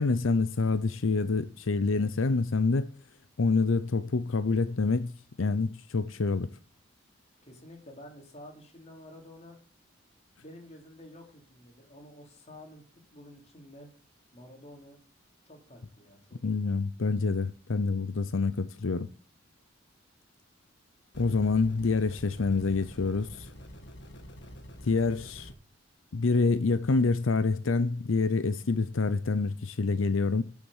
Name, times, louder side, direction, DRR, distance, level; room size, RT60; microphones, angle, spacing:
voice 1, 0.0-2.9 3.4-5.1 5.4-6.5 16.4-19.1 21.2-23.5 24.8-25.5 26.1-30.4, left 4 dB, 80° left, 0.6 m, -27 dB
voice 2, 7.4-9.6 10.4-12.8 13.1-13.9 14.3-15.0 15.4-16.4, left 1 dB, 35° left, 3.6 m, -50 dB
sound 1, 21.1-25.5, equal, 55° left, 1.9 m, -47 dB
12.0 x 7.2 x 7.2 m
head